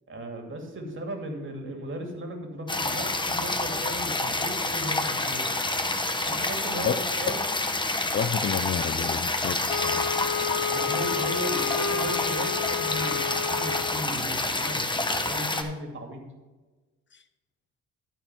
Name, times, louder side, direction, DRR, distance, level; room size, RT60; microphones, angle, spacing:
voice 1, 0.1-5.4 6.3-7.4 10.7-16.2, right 1 dB, 40° right, 3 dB, 2.3 m, -36 dB
sound 1, 2.7-15.6, left 2 dB, 15° left, 1.0 m, -28 dB
voice 2, 8.1-10.1, left 7 dB, 40° left, 12 dB, 0.5 m, -29 dB
Wind instrument woodwind instrument, 9.7-14.1, left 8 dB, 80° left, 0.6 m, -31 dB
12.5 x 4.5 x 5.9 m, 1.3 s
cardioid pair, 90°, 30 cm